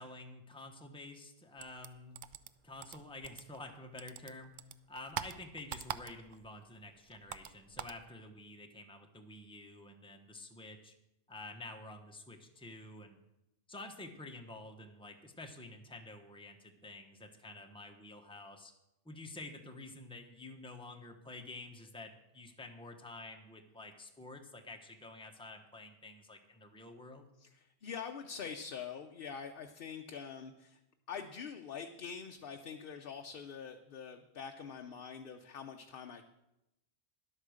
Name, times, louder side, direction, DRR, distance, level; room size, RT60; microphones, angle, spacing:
voice 1, 0.0-2.2 2.6-10.9 11.3-13.2 13.7-18.7 19.0-27.3, left 2 dB, 5° left, 3 dB, 1.0 m, -49 dB
sound 1, 1.6-3.7 4.0-6.5 6.7-8.0, right 9 dB, 60° right, 0.5 m, -44 dB
voice 2, 27.4-30.8 31.1-36.2, left 6 dB, 55° left, 5 dB, 0.8 m, -45 dB
11.5 x 8.4 x 6.4 m, 0.90 s
omnidirectional pair, 1.2 m